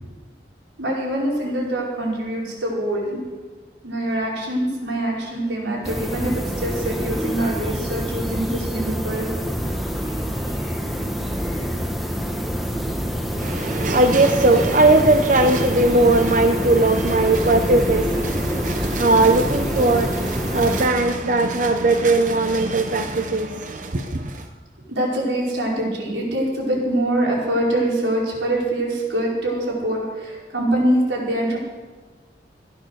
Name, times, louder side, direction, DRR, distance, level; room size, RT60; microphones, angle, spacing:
voice 1, 0.8-3.2 3.8-9.3 10.0-10.1 10.3-10.5 24.9-31.6, right 1 dB, 90° right, -3 dB, 4.9 m, -24 dB
sound 1, 5.8-20.9, equal, ahead, 1.2 m, -26 dB
voice 2, 13.4-24.5, right 2 dB, 45° right, 5 dB, 0.8 m, -19 dB
16.0 x 10.5 x 6.4 m, 1.3 s
head